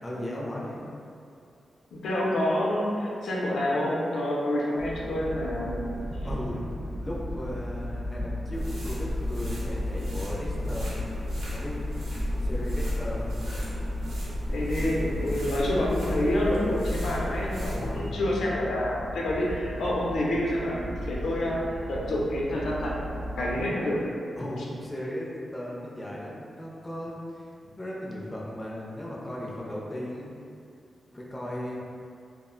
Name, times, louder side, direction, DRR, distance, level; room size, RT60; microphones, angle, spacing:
voice 1, 0.0-0.8 6.2-6.6 7.0-11.1 11.5-13.3 17.7-18.2 19.4-19.5 24.4-25.3 25.5-30.3 31.1-31.7, equal, 15° left, -5 dB, 0.4 m, -36 dB
voice 2, 1.9-5.8 14.5-24.0, left 1 dB, 80° left, -4 dB, 0.5 m, -28 dB
sound 1, 4.8-23.7, left 1 dB, 55° right, 0.5 m, -35 dB
sound 2, 8.5-18.1, equal, 90° right, 0.8 m, -34 dB
2.3 x 2.0 x 3.7 m, 2.4 s
wide cardioid pair, 130°, 0 cm